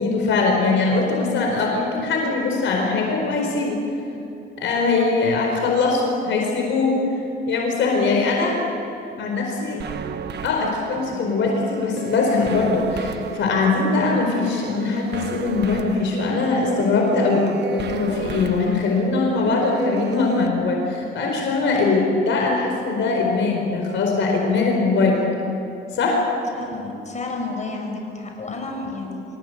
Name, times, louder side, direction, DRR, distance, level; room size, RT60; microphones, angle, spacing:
voice 1, 0.0-3.8 4.6-7.0 7.5-8.6 9.2-9.8 10.4-17.4 17.7-25.2 25.9-26.2, left 3 dB, 75° left, 1 dB, 4.6 m, -21 dB
sound 1, 9.8-20.5, right 7 dB, 60° right, 1.4 m, -33 dB
voice 2, 26.5-29.2, left 3 dB, 35° left, 2 dB, 6.1 m, -31 dB
27.0 x 17.0 x 8.2 m, 2.7 s
cardioid pair, 90°, 20 cm